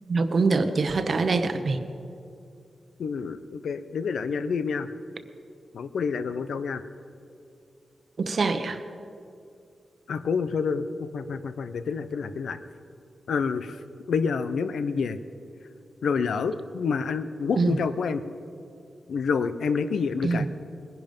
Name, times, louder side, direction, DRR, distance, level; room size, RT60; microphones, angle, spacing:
voice 1, 0.1-1.8 8.2-8.8 17.6-17.8 20.2-20.5, right 3 dB, 50° right, 9 dB, 0.9 m, -24 dB
voice 2, 3.0-4.9 5.7-6.8 10.1-12.6 13.3-13.8 14.1-15.2 16.0-18.2 19.1-20.5, left 5 dB, 90° left, 11 dB, 0.7 m, -28 dB
20.5 x 10.5 x 5.3 m, 2.5 s
wide cardioid pair, 130°, 0 cm